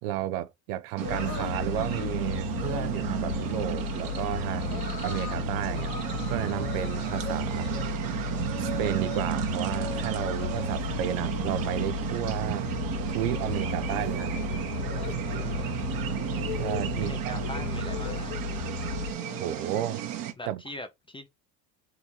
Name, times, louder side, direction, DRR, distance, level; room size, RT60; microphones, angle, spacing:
voice 1, 0.0-5.9 6.3-7.7 8.6-12.7 13.1-14.4 16.6-17.4 19.4-20.0 20.5-20.6, right 13 dB, 65° right, 0.7 m, -32 dB
sound 1, 1.0-2.1 2.5-2.9 3.4-3.6 4.0-4.3 4.6-5.4 5.7-9.2 9.5-10.8 11.1-11.5 11.8-20.0, left 6 dB, 65° left, 1.6 m, -42 dB
sound 2, 1.0-20.3, right 12 dB, 45° right, 1.0 m, -33 dB
sound 3, 1.1-19.1, left 7 dB, 90° left, 0.7 m, -34 dB
voice 2, 15.2-15.8 17.0-18.3 20.4-21.3, left 2 dB, 10° left, 0.4 m, -42 dB
3.8 x 2.7 x 4.3 m
hypercardioid pair, 70°, 48 cm